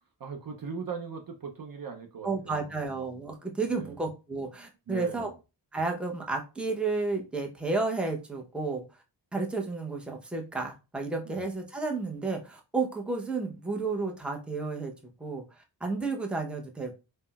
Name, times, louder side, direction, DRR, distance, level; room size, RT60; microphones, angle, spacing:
voice 1, 0.2-2.7 3.6-4.0 4.9-5.3 11.2-11.5, right 6 dB, 50° right, 0.6 m, -39 dB
voice 2, 2.2-5.3 5.7-8.8 9.3-14.9 15.2-17.0, right 3 dB, ahead, 0.6 m, -32 dB
3.7 x 2.1 x 2.3 m
cardioid pair, 60°, 47 cm